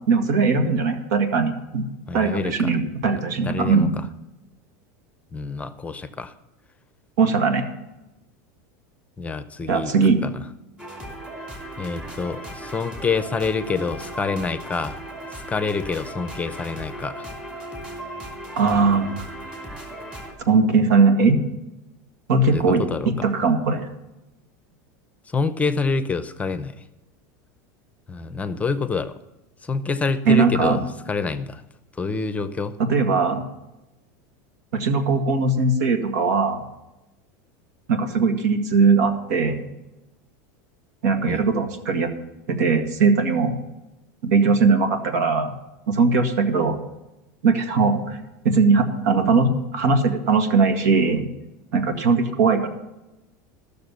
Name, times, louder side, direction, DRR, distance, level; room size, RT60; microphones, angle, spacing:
voice 1, 0.1-1.8 2.1-3.9 7.2-7.7 9.7-10.2 18.6-19.3 20.5-21.4 22.3-23.9 30.3-30.8 32.8-33.4 34.7-36.6 37.9-39.6 41.0-42.1 42.5-43.5 44.2-45.5 45.9-46.8 47.4-48.2 48.4-51.3 51.7-52.7, right 4 dB, 80° right, 7 dB, 1.9 m, -20 dB
voice 2, 2.1-2.7 3.1-4.0 5.3-6.3 9.2-9.9 10.2-10.5 11.8-15.0 15.5-17.3 22.5-23.3 25.3-26.8 28.1-29.2 29.6-31.6 31.9-32.7 41.3-41.4, left 4 dB, 15° left, 12 dB, 0.7 m, -27 dB
sound 1, 10.8-20.3, right 1 dB, 10° right, 2.9 m, -37 dB
14.5 x 6.7 x 6.9 m, 0.96 s
supercardioid pair, 125°, 9 cm